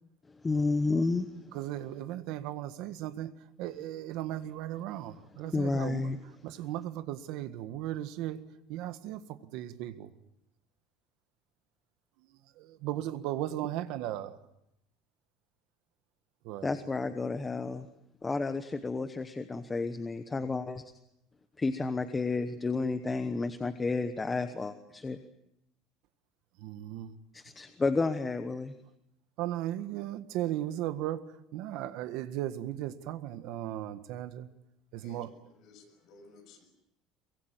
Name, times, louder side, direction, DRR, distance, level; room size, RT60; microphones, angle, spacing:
voice 1, 0.4-1.3 5.5-6.2 16.6-17.9 18.2-20.8 21.6-25.2 27.3-28.7, left 3 dB, 10° left, 9 dB, 1.0 m, -31 dB
voice 2, 1.5-8.4 8.7-10.1 12.2-14.4 16.4-16.8 26.6-27.2 29.4-34.5 34.9-35.3, right 13 dB, 60° right, 11 dB, 1.7 m, -37 dB
voice 3, 35.6-36.7, left 3 dB, 45° left, 5 dB, 7.1 m, -56 dB
23.5 x 23.0 x 9.2 m, 0.80 s
cardioid pair, 175°, 0 cm